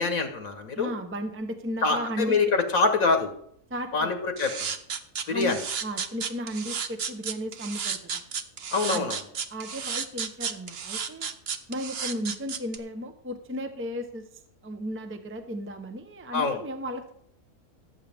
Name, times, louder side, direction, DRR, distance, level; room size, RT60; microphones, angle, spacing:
voice 1, 0.0-0.9 1.8-3.3 3.9-4.7 5.3-5.6 8.7-9.2 16.3-16.6, left 4 dB, 65° left, 7 dB, 1.7 m, -25 dB
voice 2, 0.7-2.4 3.7-4.1 5.3-5.5 5.8-8.2 8.9-9.0 9.5-11.3 11.7-14.3 14.6-17.0, equal, 10° right, 6 dB, 0.8 m, -34 dB
sound 1, 4.4-12.8, right 6 dB, 50° right, 0.9 m, -32 dB
17.0 x 8.3 x 3.5 m, 0.67 s
omnidirectional pair, 1.6 m